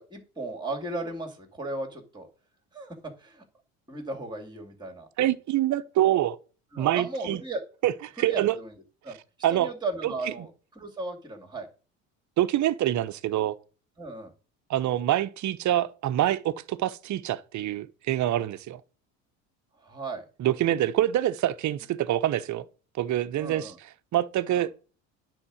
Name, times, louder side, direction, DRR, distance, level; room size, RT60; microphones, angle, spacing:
voice 1, 0.0-2.3 2.7-3.4 3.9-5.1 6.7-7.6 8.2-9.2 9.5-11.7 14.0-14.3 19.8-20.2 23.4-23.8 24.5-24.7, right 2 dB, 10° right, 2.6 m, -36 dB
voice 2, 5.2-6.4 6.8-7.4 7.8-7.9 8.2-8.5 9.4-9.7 10.0-10.1 12.4-13.6 14.7-18.8 20.4-22.6 23.0-23.7 24.1-24.7, right 13 dB, 45° right, 0.8 m, -25 dB
9.8 x 3.7 x 6.3 m
hypercardioid pair, 70°, 40 cm